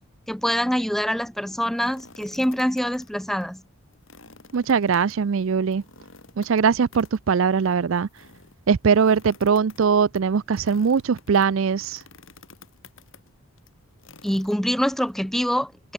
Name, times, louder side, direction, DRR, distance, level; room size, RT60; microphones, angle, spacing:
voice 1, 0.3-3.6 14.2-15.9, equal, ahead, 0.5 m, -25 dB
sound 1, 1.5-3.1 3.4-3.5 3.9-15.1, left 4 dB, 60° left, 6.1 m, -51 dB
voice 2, 4.5-5.8 6.4-8.1 8.7-12.0, right 6 dB, 60° right, 0.4 m, -21 dB
head